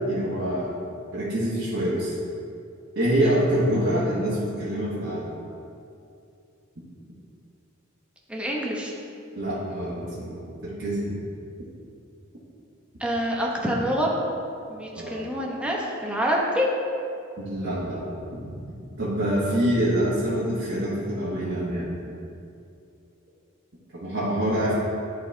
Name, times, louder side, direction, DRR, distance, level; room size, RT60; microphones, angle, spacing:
voice 1, 0.1-0.7 1.1-2.1 2.9-5.3 9.3-11.1 14.9-15.2 17.4-18.5 19.0-21.9 24.0-24.7, right 1 dB, 60° right, -10 dB, 1.3 m, -26 dB
voice 2, 8.3-8.9 13.0-14.1 14.7-16.7, equal, 5° right, -3 dB, 0.9 m, -26 dB
10.5 x 4.2 x 3.3 m, 2.5 s
head